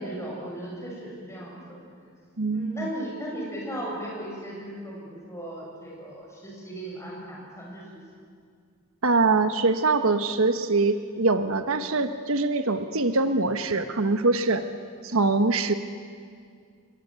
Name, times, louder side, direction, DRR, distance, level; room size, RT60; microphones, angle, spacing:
voice 1, 0.0-1.8 2.5-7.8, right 1 dB, 15° left, -3 dB, 7.9 m, -36 dB
voice 2, 2.4-2.9 9.0-14.7 15.0-15.7, right 3 dB, 70° right, 9 dB, 1.2 m, -23 dB
28.5 x 22.0 x 9.4 m, 2.2 s
head